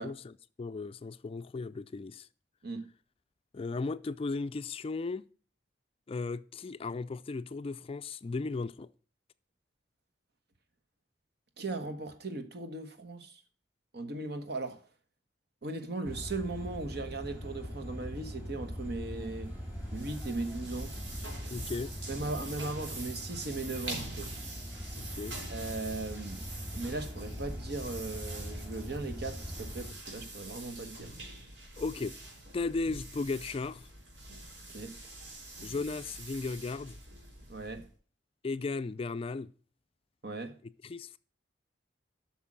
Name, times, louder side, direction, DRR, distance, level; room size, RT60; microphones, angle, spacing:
voice 1, 0.0-2.3 3.5-5.2 6.1-8.9 21.5-21.9 25.0-25.4 31.8-32.2 32.5-33.9 35.6-37.0 38.4-39.5 40.8-41.2, left 3 dB, 30° left, 0.3 m, -36 dB
voice 2, 11.6-13.4 13.9-14.8 15.6-19.5 19.9-21.0 22.1-24.3 25.5-26.4 26.7-31.1 34.7-34.9 37.5-37.8 40.2-40.5, right 2 dB, 65° right, 1.4 m, -38 dB
sound 1, 16.0-29.9, equal, 10° right, 2.5 m, -42 dB
sound 2, 19.5-37.9, right 2 dB, 85° right, 3.8 m, -45 dB
8.2 x 6.0 x 7.4 m
head